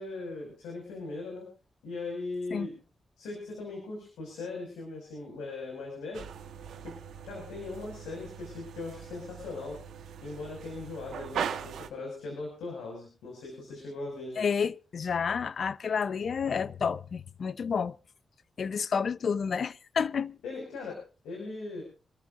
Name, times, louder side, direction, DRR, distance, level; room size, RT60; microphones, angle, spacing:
voice 1, 0.0-1.5 1.8-2.7 3.2-6.3 6.8-7.0 7.2-9.8 10.2-14.5 20.4-21.8, left 3 dB, 90° left, 5.8 m, -39 dB
sound 1, 6.1-11.9, right 8 dB, 85° right, 1.4 m, -40 dB
voice 2, 14.4-17.9 18.6-20.4, left 6 dB, 65° left, 0.7 m, -30 dB
27.0 x 14.0 x 2.5 m
supercardioid pair, 45°, 0 cm